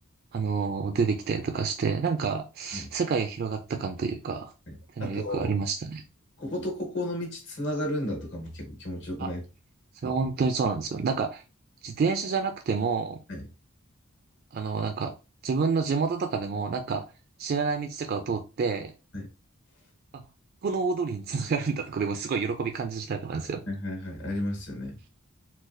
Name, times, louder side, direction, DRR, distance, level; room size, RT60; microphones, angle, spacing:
voice 1, 0.3-4.5 5.0-6.0 9.2-9.3 10.0-11.4 11.8-13.2 14.5-15.1 15.4-17.0 17.4-18.9 20.1-20.2 20.6-23.6, right 5 dB, 45° right, 5 dB, 0.3 m, -28 dB
voice 2, 4.7-5.5 6.4-9.4 13.3-13.5 19.1-19.3 23.7-25.0, left 1 dB, 60° left, 1 dB, 1.4 m, -33 dB
4.0 x 2.2 x 2.5 m, 0.30 s
head